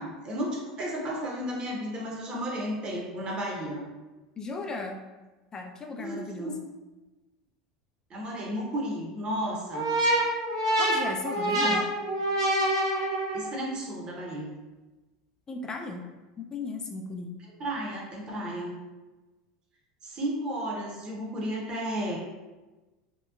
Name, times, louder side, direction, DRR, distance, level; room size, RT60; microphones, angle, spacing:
voice 1, 0.0-3.9 6.0-6.6 8.1-9.9 11.4-11.8 13.3-14.5 17.6-18.8 20.0-22.2, equal, 35° right, -3 dB, 0.8 m, -33 dB
voice 2, 4.4-5.0 5.5-6.6 10.8-11.9 15.5-16.1 16.4-17.4, left 3 dB, 25° left, 3 dB, 0.4 m, -36 dB
sound 1, 9.7-13.6, right 1 dB, 80° right, 0.6 m, -26 dB
2.8 x 2.0 x 2.3 m, 1.2 s
hypercardioid pair, 90°, 3 cm